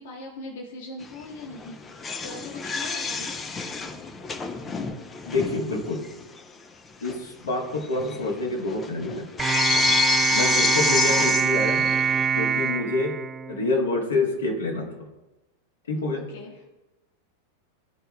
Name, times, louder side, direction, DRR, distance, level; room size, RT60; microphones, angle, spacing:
voice 1, 0.0-1.8 2.2-3.3 11.1-11.2 16.1-16.6, left 2 dB, 55° left, -1 dB, 1.5 m, -40 dB
sound 1, 1.0-1.2 1.5-6.1 6.4-6.5 7.0-7.2 7.5-12.3, left 4 dB, 20° left, 0.7 m, -28 dB
voice 2, 5.2-6.0 7.0-9.2 10.3-11.8 12.3-13.1 13.5-14.9 15.9-16.2, left 2 dB, 70° left, -2 dB, 1.5 m, -27 dB
sound 2, 9.4-13.9, right 7 dB, 20° right, 0.4 m, -24 dB
13.5 x 4.5 x 2.3 m, 1.0 s
figure-of-eight pair, 90°, 0 cm